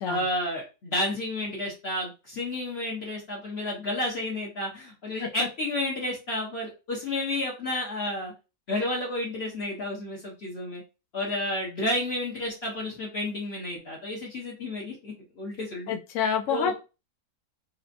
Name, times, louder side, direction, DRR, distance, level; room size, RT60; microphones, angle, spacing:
voice 1, 0.0-8.3 8.7-10.8 11.1-15.9 16.5-16.7, left 1 dB, 45° left, -3 dB, 1.1 m, -31 dB
voice 2, 15.9-16.7, left 7 dB, 60° left, 4 dB, 0.9 m, -27 dB
4.2 x 2.7 x 2.6 m, 0.30 s
omnidirectional pair, 1.7 m